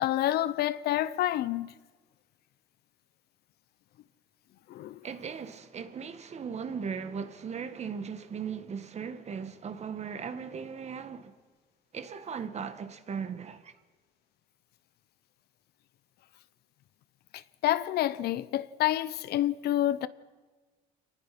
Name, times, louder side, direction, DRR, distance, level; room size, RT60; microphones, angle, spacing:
voice 1, 0.0-1.7 4.7-5.0 17.3-20.1, left 13 dB, 70° left, 0.8 m, -28 dB
voice 2, 5.0-11.3 11.9-13.7, right 6 dB, 40° right, 1.7 m, -38 dB
26.5 x 20.0 x 6.0 m
cardioid pair, 110°, 17 cm